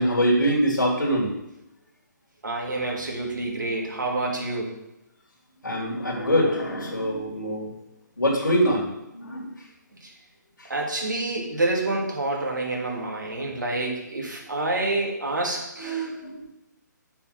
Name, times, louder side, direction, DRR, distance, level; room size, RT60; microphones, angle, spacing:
voice 1, 0.0-1.3 5.6-7.7 8.2-9.5 15.8-16.4, equal, 85° left, -4 dB, 3.1 m, -24 dB
voice 2, 2.4-4.7 10.0-10.1 10.7-16.1, right 2 dB, 75° right, -2 dB, 2.6 m, -28 dB
7.0 x 5.6 x 6.1 m, 0.88 s
figure-of-eight pair, 140°, 10 cm